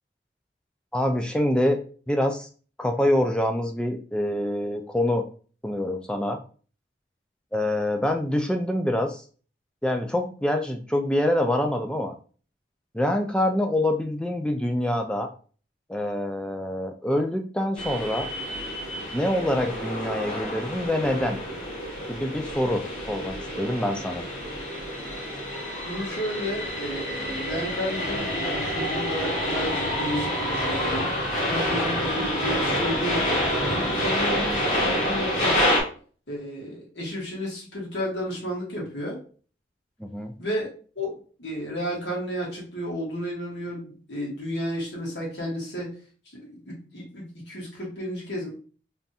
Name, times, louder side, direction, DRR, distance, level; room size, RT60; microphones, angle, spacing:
voice 1, 0.9-1.8 2.1-2.5 2.8-5.2 5.6-6.4 7.5-9.2 9.8-12.1 12.9-15.3 15.9-18.3 19.1-21.4 22.1-24.3 40.0-40.3, left 1 dB, 5° left, 5 dB, 0.4 m, -25 dB
sound 1, 17.8-35.8, equal, 40° left, 2.1 m, -28 dB
voice 2, 25.9-31.1 31.5-33.2 33.7-35.8 36.3-39.2 40.4-40.7 41.0-45.9 46.3-48.5, equal, 80° left, -3 dB, 1.8 m, -32 dB
3.5 x 2.6 x 4.1 m, 0.40 s
head